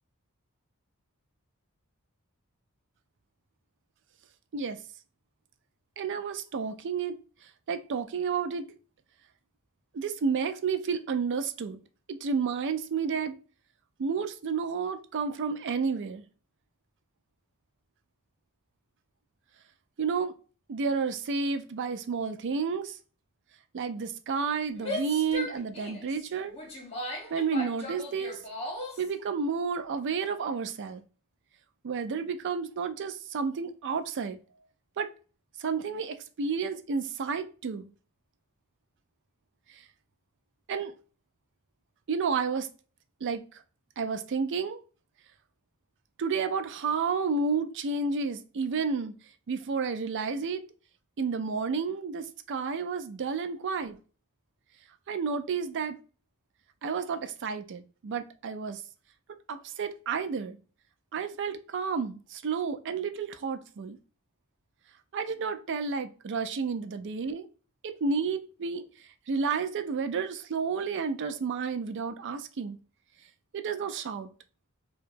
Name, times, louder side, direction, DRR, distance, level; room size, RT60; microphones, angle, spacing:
voice 1, 6.0-7.2 7.7-8.7 9.9-11.8 12.1-13.4 14.0-16.2 20.0-20.3 20.7-23.0 23.7-26.6 27.3-28.4 29.0-31.0 31.8-34.4 35.0-35.1 35.6-37.9 39.7-39.8 40.7-40.9 42.1-42.7 43.2-43.4 44.0-44.8 46.2-49.1 49.5-50.6 51.2-54.0 55.1-56.0 56.8-58.8 59.5-60.6 61.1-64.0 65.1-67.5 67.8-68.8 69.3-72.8 73.5-74.3, right 5 dB, 55° right, 0.4 m, -31 dB
Female speech woman speaking / Yell, 24.7-29.1, left 1 dB, 30° left, 1.0 m, -37 dB
4.6 x 2.3 x 2.5 m
head